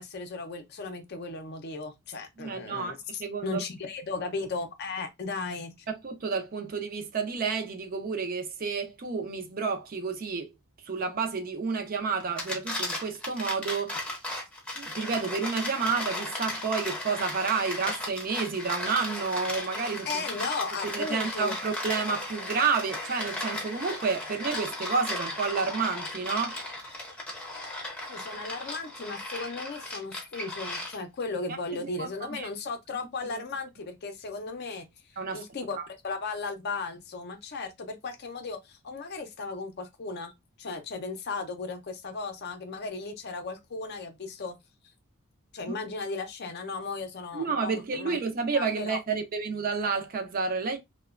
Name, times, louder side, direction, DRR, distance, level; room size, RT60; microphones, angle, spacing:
voice 1, 0.0-5.7 20.1-21.6 28.1-34.8 35.3-40.3 40.6-44.6 45.5-48.2 48.5-49.0, left 3 dB, 50° left, 0.5 m, -36 dB
voice 2, 2.4-2.9 3.2-3.6 5.9-10.5 10.9-14.0 14.8-20.2 20.8-26.6 31.8-32.5 33.3-33.4 35.2-35.4 35.7-35.8 45.7-45.8 47.3-50.8, right 5 dB, 40° right, 0.4 m, -30 dB
sound 1, 12.2-31.2, left 1 dB, 5° left, 0.6 m, -36 dB
2.9 x 2.1 x 2.3 m
head